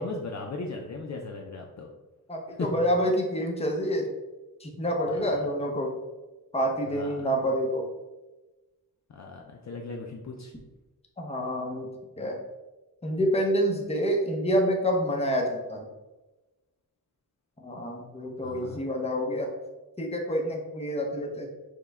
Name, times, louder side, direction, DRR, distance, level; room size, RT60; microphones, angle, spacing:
voice 1, 0.0-1.9 2.6-2.9 5.1-5.4 6.9-7.3 9.1-10.5 18.4-18.8, left 3 dB, 50° left, 0 dB, 0.5 m, -37 dB
voice 2, 2.3-4.1 4.6-5.9 6.5-7.9 11.2-11.9 12.2-12.4 13.0-15.9 17.6-19.5 20.0-21.5, equal, 15° left, 0 dB, 0.7 m, -27 dB
6.3 x 2.2 x 3.5 m, 1.1 s
wide cardioid pair, 125°, 37 cm